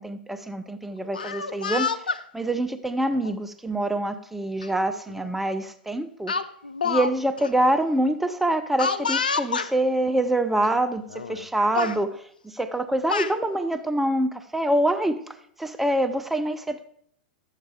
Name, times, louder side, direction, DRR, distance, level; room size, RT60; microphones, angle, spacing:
voice 1, 0.0-2.1 2.3-6.3 6.8-11.0 11.3-15.2 15.6-16.9, right 1 dB, 5° right, 9 dB, 0.6 m, -25 dB
Speech, 1.0-2.2 3.1-3.4 4.6-4.7 5.1-5.3 6.3-7.1 7.4-7.5 8.8-9.7 10.6-10.7 11.1-11.4 11.7-12.0 12.8-13.3, left 5 dB, 75° left, 0.5 m, -28 dB
11.5 x 8.2 x 3.6 m, 0.67 s
figure-of-eight pair, 95°, 5 cm